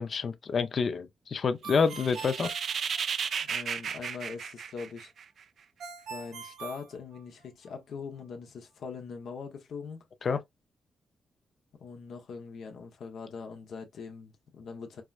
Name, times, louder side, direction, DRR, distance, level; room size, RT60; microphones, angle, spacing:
voice 1, 0.0-2.5 10.2-10.4, left 5 dB, 55° left, 0.5 m, -28 dB
Ringtone, 1.6-3.6 5.8-7.7, right 6 dB, 85° right, 1.8 m, -43 dB
sound 1, 1.8-5.4, right 7 dB, 65° right, 0.3 m, -34 dB
voice 2, 3.4-5.1 6.1-10.1 11.8-15.0, left 5 dB, 75° left, 0.9 m, -42 dB
4.6 x 2.1 x 2.4 m
cardioid pair, 90°, 0 cm